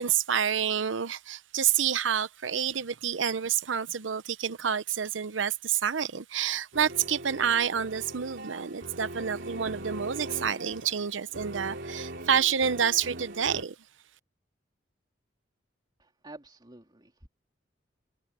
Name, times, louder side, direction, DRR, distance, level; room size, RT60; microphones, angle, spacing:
voice 1, 0.0-13.7, right 8 dB, 80° right, 0.8 m, -28 dB
sound 1, 6.7-13.6, right 1 dB, 65° right, 3.8 m, -41 dB
voice 2, 16.0-17.3, right 2 dB, 25° right, 3.1 m, -49 dB
open air
head